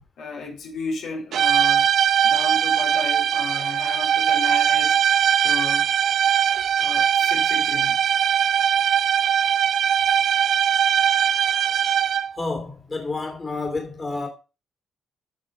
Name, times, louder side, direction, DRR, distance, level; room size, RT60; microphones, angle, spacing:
voice 1, 0.2-1.9 2.2-5.0 5.4-5.9 6.8-8.0, left 3 dB, 75° left, 3.8 m, -33 dB
sound 1, 1.3-12.4, right 9 dB, 65° right, 0.5 m, -20 dB
voice 2, 12.4-14.3, left 3 dB, 30° left, 3.0 m, -29 dB
9.4 x 6.5 x 5.0 m
cardioid pair, 90°, 0 cm